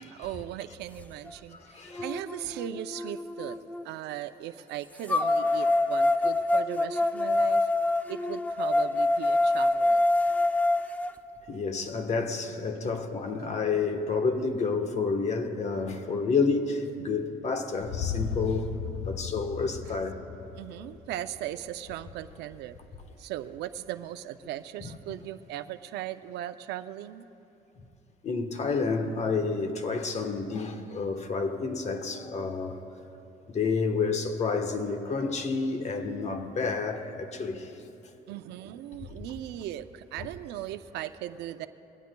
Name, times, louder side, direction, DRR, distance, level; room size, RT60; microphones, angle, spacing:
voice 1, 0.0-3.6 3.8-7.7 8.1-10.0 12.8-12.9 19.9-20.0 20.6-22.8 23.2-27.2 38.3-41.7, right 12 dB, 80° right, 0.5 m, -38 dB
sound 1, 1.3-1.4 1.9-3.8 5.1-11.1, left 2 dB, 10° left, 0.5 m, -26 dB
voice 2, 1.5-2.0 11.5-18.7 19.0-20.2 24.8-25.2 28.2-32.8 33.5-37.7, left 4 dB, 40° left, 1.2 m, -30 dB
sound 2, 17.8-21.8, left 7 dB, 75° left, 0.6 m, -36 dB
22.0 x 17.5 x 2.3 m
cardioid pair, 110°, 17 cm